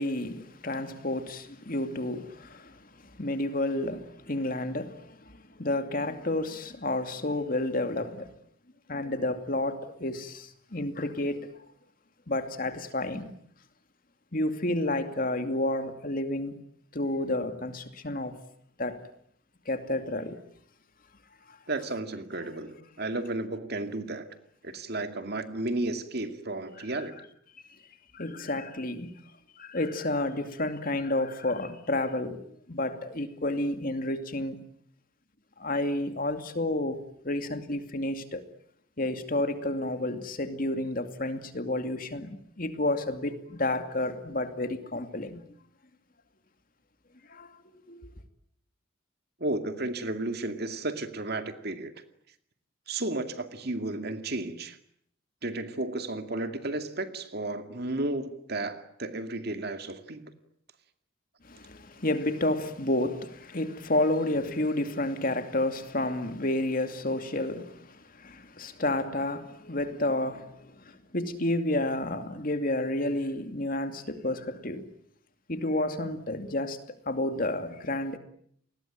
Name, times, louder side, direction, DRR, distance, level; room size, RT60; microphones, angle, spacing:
voice 1, 0.0-8.3 8.9-11.5 12.3-13.3 14.3-16.6 16.9-18.4 18.8-19.0 19.7-20.4 21.5-21.6 26.9-27.1 28.1-29.2 29.6-34.6 35.6-38.4 39.0-45.4 47.3-47.5 47.9-48.0 61.4-74.9 75.5-78.2, left 1 dB, 45° left, 2.5 m, -30 dB
voice 2, 21.7-24.3 24.6-27.1 49.4-51.9 52.9-54.8 55.4-60.3, right 2 dB, 55° right, 2.3 m, -33 dB
29.5 x 20.5 x 9.0 m
head